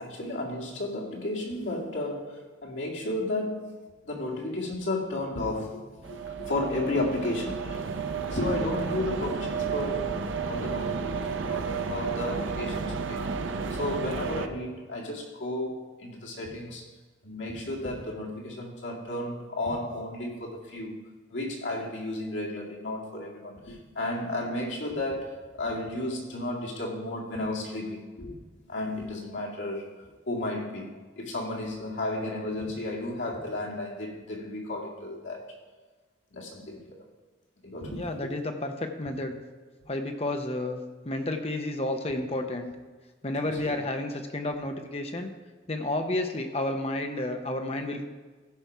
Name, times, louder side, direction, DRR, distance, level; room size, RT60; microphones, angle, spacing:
voice 1, 0.0-3.8 4.0-10.2 10.4-13.3 13.7-16.8 17.2-21.0 21.3-28.4 28.7-29.9 30.3-35.5 36.3-37.0 37.6-38.3 43.4-43.8, left 1 dB, 85° left, -2 dB, 2.1 m, -33 dB
sound 1, 6.0-14.5, right 5 dB, 85° right, 0.6 m, -32 dB
voice 2, 37.9-39.4 39.9-42.7 43.2-45.3 45.7-48.0, left 1 dB, 30° left, 5 dB, 0.8 m, -31 dB
15.0 x 5.4 x 4.6 m, 1.3 s
head